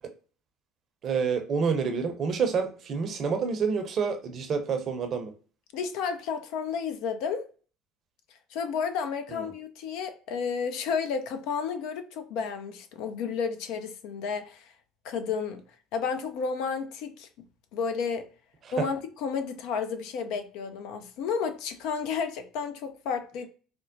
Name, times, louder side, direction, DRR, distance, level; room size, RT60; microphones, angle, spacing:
voice 1, 1.0-5.3 9.3-9.5 18.7-18.9, right 5 dB, 50° right, 0.6 m, -28 dB
voice 2, 5.7-7.4 8.5-14.7 15.0-15.6 15.9-17.3 17.7-18.3 18.7-23.5, left 6 dB, 65° left, 0.4 m, -32 dB
4.4 x 2.0 x 2.6 m
hypercardioid pair, 65°, 0 cm